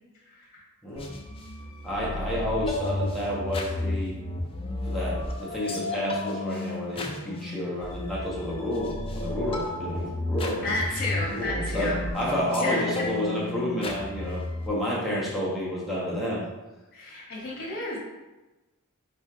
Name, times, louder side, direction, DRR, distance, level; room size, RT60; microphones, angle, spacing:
voice 1, 0.2-0.6 10.6-12.0 12.6-12.8 16.9-18.0, left 2 dB, 40° left, -4 dB, 1.4 m, -32 dB
sound 1, 1.0-14.7, left 1 dB, 25° left, 0.5 m, -33 dB
voice 2, 1.8-4.2 4.8-10.7 11.3-16.4, left 1 dB, ahead, -7 dB, 1.2 m, -30 dB
4.3 x 3.4 x 3.6 m, 1.1 s
head